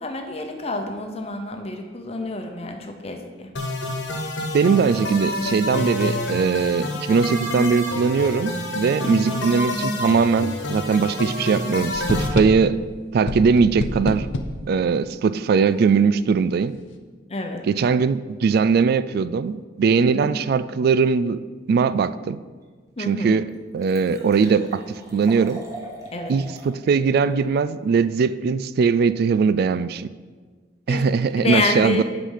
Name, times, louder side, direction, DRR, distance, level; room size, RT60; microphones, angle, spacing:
voice 1, 0.0-3.5 9.0-9.4 17.3-17.6 20.0-20.4 23.0-23.4 26.1-26.3 30.9-31.1 31.4-32.0, left 3 dB, 35° left, 4 dB, 0.9 m, -28 dB
sound 1, 3.6-12.3, left 2 dB, 65° left, 1.3 m, -28 dB
voice 2, 4.5-12.8 13.1-14.3 14.7-16.7 17.7-21.4 21.7-22.4 23.0-23.5 23.7-24.8 25.1-25.6 26.3-30.1 30.9-32.0, right 5 dB, 55° right, 15 dB, 0.3 m, -20 dB
sound 2, 11.9-12.8 13.3-14.6, left 2 dB, 85° left, 0.7 m, -27 dB
Liquid, 22.6-22.7 23.2-23.3 23.5-26.7 27.1-27.2, right 2 dB, 15° right, 1.4 m, -41 dB
8.2 x 5.1 x 5.6 m, 1.5 s
head